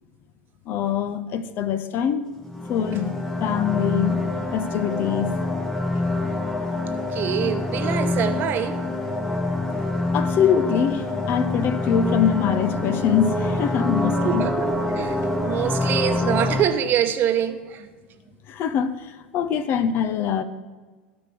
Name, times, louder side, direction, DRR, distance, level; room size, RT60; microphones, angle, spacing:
voice 1, 0.7-2.3 2.7-3.1 3.4-4.2 4.5-5.3 9.6-9.8 10.1-14.5 18.5-20.4, left 8 dB, 40° left, 0.7 m, -23 dB
sound 1, 2.4-16.7, left 2 dB, 5° left, 1.2 m, -26 dB
voice 2, 6.8-9.0 14.2-15.2 15.4-17.9, right 9 dB, 35° right, 1.0 m, -25 dB
13.0 x 5.3 x 6.7 m
figure-of-eight pair, 80°, 6 cm